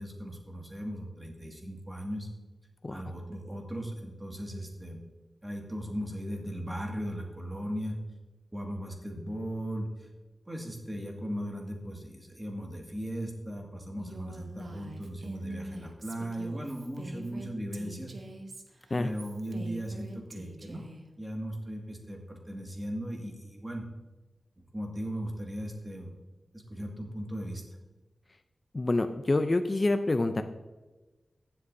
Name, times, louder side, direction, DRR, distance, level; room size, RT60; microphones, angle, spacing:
voice 1, 0.0-2.3 2.9-5.0 5.4-8.0 8.5-10.1 10.5-18.1 18.9-20.8 21.2-23.8 24.6-26.1 26.5-27.6, equal, 20° right, 0 dB, 2.1 m, -37 dB
Female speech woman speaking, 14.0-21.0, right 1 dB, 60° right, 1.0 m, -44 dB
voice 2, 28.7-30.4, left 2 dB, 40° left, 8 dB, 0.5 m, -27 dB
14.5 x 7.8 x 2.7 m, 1.2 s
cardioid pair, 65°, 0 cm